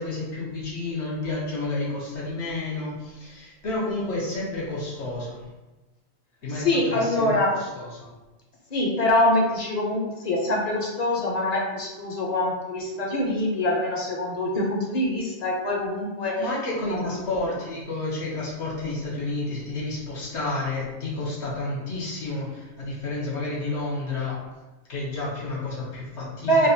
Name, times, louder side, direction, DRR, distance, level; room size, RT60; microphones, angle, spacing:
voice 1, 0.0-5.4 6.4-8.1 16.4-24.4 24.9-26.7, left 2 dB, 75° left, -5 dB, 1.3 m, -30 dB
voice 2, 6.6-7.5 8.7-16.4 16.9-17.1 26.4-26.7, left 1 dB, 45° left, -2 dB, 0.6 m, -24 dB
4.0 x 2.4 x 2.6 m, 1.1 s
omnidirectional pair, 1.2 m